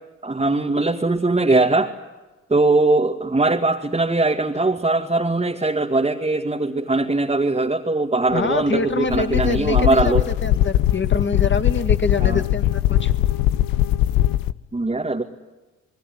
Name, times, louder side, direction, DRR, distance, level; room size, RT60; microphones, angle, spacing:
voice 1, 0.2-1.9 2.5-10.2 12.2-12.4 14.7-15.2, right 2 dB, 20° right, 1 dB, 2.3 m, -20 dB
sound 1, 8.3-14.5, left 14 dB, 70° left, 0.9 m, -21 dB
voice 2, 8.3-13.1, left 4 dB, 30° left, 8 dB, 2.5 m, -25 dB
28.0 x 20.5 x 9.6 m, 1.1 s
hypercardioid pair, 45°, 35 cm